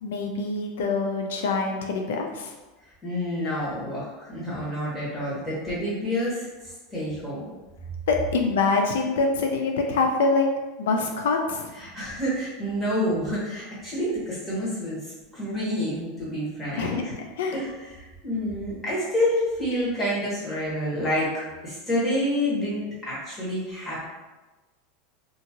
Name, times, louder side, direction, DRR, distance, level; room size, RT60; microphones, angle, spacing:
voice 1, 0.0-2.5 8.1-10.5 10.8-11.7 16.8-17.0 17.4-17.6, left 4 dB, 90° left, 3 dB, 0.4 m, -25 dB
voice 2, 3.0-7.5 11.7-17.1 17.5-21.3 21.6-24.1, equal, 10° left, -9 dB, 1.2 m, -28 dB
2.6 x 2.5 x 2.8 m, 1.2 s
supercardioid pair, 150°, 0 cm